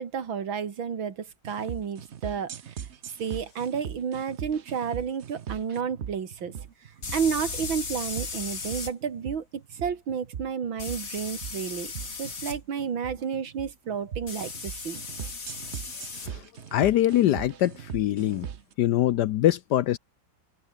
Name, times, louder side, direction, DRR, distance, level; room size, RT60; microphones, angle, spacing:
voice 1, 0.0-2.7 3.2-6.5 7.1-11.9 12.2-15.0, right 7 dB, 75° right, 2.8 m, -31 dB
sound 1, 1.4-18.7, right 8 dB, 50° right, 0.8 m, -40 dB
sound 2, 3.6-3.7 7.0-8.9 10.8-12.6 14.3-16.3, left 4 dB, 45° left, 2.9 m, -36 dB
voice 2, 16.7-18.5 18.8-20.0, left 13 dB, 70° left, 1.1 m, -23 dB
open air
omnidirectional pair, 2.2 m